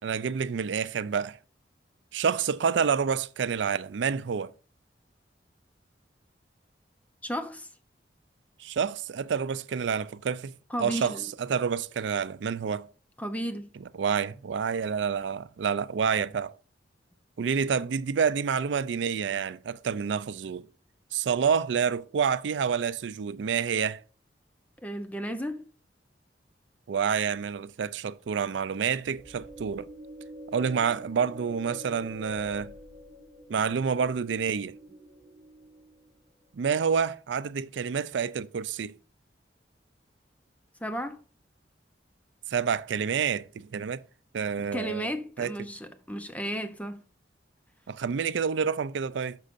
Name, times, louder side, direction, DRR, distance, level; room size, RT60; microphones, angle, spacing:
voice 1, 0.0-1.4 2.1-4.5 8.6-10.5 10.8-12.9 14.0-16.5 17.4-20.7 21.1-24.0 26.9-29.9 30.5-32.7 33.5-34.8 36.5-39.0 42.5-44.0 44.3-45.1 45.4-45.5 47.9-49.4, right 6 dB, 85° right, 0.4 m, -28 dB
voice 2, 7.2-7.7 10.7-11.2 13.2-13.7 24.8-25.6 40.8-41.2 44.7-47.0, equal, 10° left, 0.7 m, -34 dB
sound 1, 28.9-36.3, left 1 dB, 45° right, 1.8 m, -46 dB
11.5 x 6.3 x 2.6 m
head